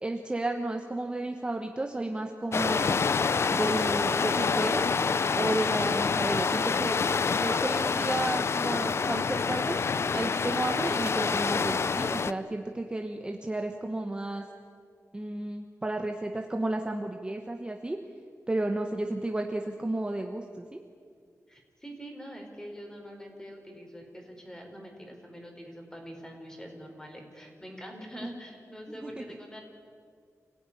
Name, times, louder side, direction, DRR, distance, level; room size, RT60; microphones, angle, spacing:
voice 1, 0.0-3.0 3.5-4.9 5.3-7.0 7.3-9.8 10.1-14.4 15.1-18.0 18.5-20.8 28.9-29.2, right 2 dB, 15° right, 3 dB, 1.2 m, -32 dB
sound 1, 2.5-12.3, left 5 dB, 50° left, 0.6 m, -27 dB
voice 2, 21.5-29.6, equal, 10° left, 2 dB, 4.5 m, -44 dB
27.5 x 17.5 x 9.9 m, 2.2 s
wide cardioid pair, 160°, 6 cm